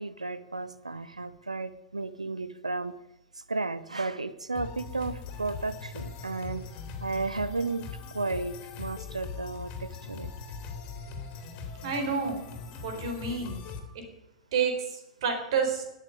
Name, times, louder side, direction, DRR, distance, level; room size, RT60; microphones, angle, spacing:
voice 1, 0.0-2.9 3.5-6.6 7.0-7.9 8.1-10.3, right 3 dB, 85° right, 15 dB, 0.9 m, -33 dB
sound 1, 4.5-13.8, left 5 dB, 35° left, 3.1 m, -41 dB
voice 2, 11.8-12.4 12.8-13.6 14.5-15.8, right 5 dB, 55° right, 4 dB, 4.2 m, -29 dB
19.0 x 6.7 x 9.6 m, 0.96 s
figure-of-eight pair, 100°, 3 cm